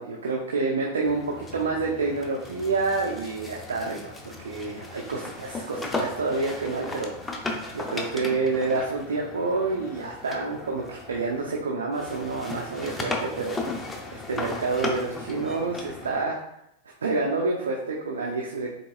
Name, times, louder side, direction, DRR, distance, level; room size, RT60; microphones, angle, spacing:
voice 1, 0.0-7.5 7.7-16.4 17.0-18.7, right 3 dB, 90° right, -2 dB, 0.5 m, -28 dB
sound 1, 1.0-11.6 11.9-16.3, left 2 dB, 10° left, 0.6 m, -36 dB
3.9 x 3.6 x 2.3 m, 0.79 s
hypercardioid pair, 115°, 0 cm